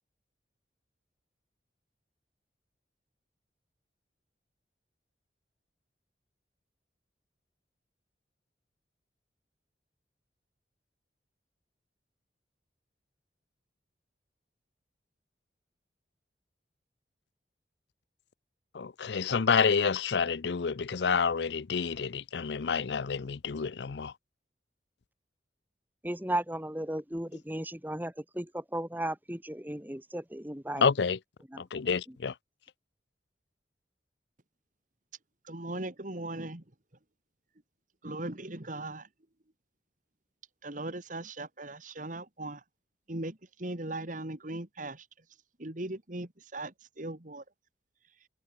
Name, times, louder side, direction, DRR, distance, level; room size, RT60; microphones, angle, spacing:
voice 1, 18.7-24.1 30.8-31.2 31.6-32.3, left 6 dB, 75° left, 0.6 m, -28 dB
voice 2, 26.0-30.9 31.5-31.6, right 1 dB, 10° right, 2.6 m, -35 dB
voice 3, 35.4-36.6 38.0-39.1 40.6-42.6 43.1-45.1 45.6-47.4, right 2 dB, 45° right, 2.2 m, -39 dB
head